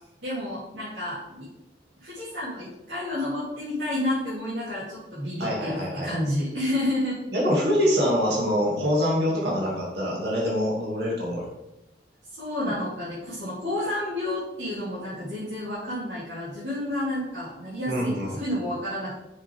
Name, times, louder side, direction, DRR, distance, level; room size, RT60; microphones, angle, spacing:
voice 1, 0.2-1.5 2.0-7.2 12.4-18.1 18.4-19.2, left 1 dB, 85° right, -11 dB, 3.1 m, -30 dB
voice 2, 5.4-6.1 7.3-11.5 17.9-18.4, equal, 65° right, -4 dB, 2.5 m, -25 dB
7.3 x 7.0 x 3.6 m, 0.95 s
head